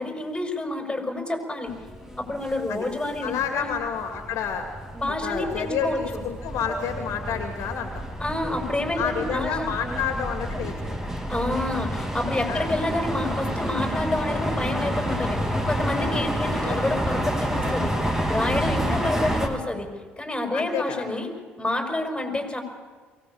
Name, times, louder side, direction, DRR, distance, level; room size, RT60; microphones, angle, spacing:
voice 1, 0.0-1.7 2.2-3.7 4.9-6.2 8.2-9.7 11.3-18.0 18.3-19.9 20.2-21.3 21.6-22.6, left 2 dB, 15° left, 4 dB, 5.8 m, -28 dB
sound 1, 1.7-19.5, equal, 5° right, 3.5 m, -29 dB
voice 2, 3.2-4.7 5.1-8.0 9.0-11.1 12.5-12.7 16.0-16.3 16.6-16.8 20.5-21.0, left 7 dB, 60° left, 5 dB, 2.4 m, -30 dB
23.0 x 18.0 x 8.8 m, 1.5 s
figure-of-eight pair, 50°, 6 cm